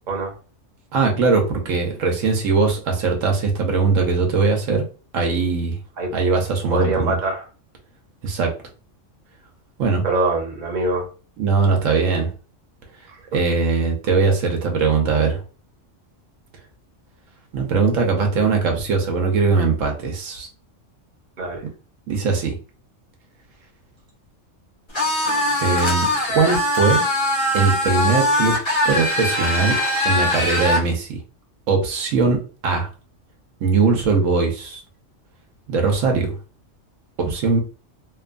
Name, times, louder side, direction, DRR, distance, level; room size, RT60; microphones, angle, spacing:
voice 1, 0.9-4.8 5.1-5.8 6.1-7.2 8.2-8.5 9.8-10.0 11.4-12.3 13.3-15.4 17.5-20.5 22.1-22.6 25.6-27.0 27.5-28.6 28.8-29.8 30.0-31.2 31.7-32.9 33.6-34.8 35.7-36.3 37.2-37.6, right 4 dB, 85° right, 2 dB, 1.1 m, -20 dB
voice 2, 6.7-7.4 10.0-11.1 13.1-13.4 21.4-21.7, right 2 dB, 40° right, 0 dB, 0.9 m, -24 dB
sound 1, 24.9-30.9, left 1 dB, 30° left, 0.6 m, -21 dB
2.9 x 2.3 x 2.4 m, 0.36 s
omnidirectional pair, 1.3 m